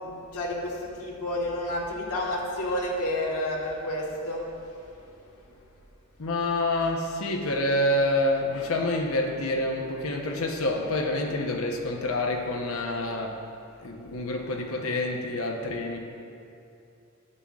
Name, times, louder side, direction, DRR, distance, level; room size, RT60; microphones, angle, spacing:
voice 1, 0.0-4.4, left 1 dB, 90° left, -4 dB, 1.4 m, -30 dB
voice 2, 6.2-13.4 13.8-16.0, left 1 dB, 75° left, 2 dB, 0.8 m, -27 dB
11.0 x 8.9 x 2.4 m, 2.7 s
head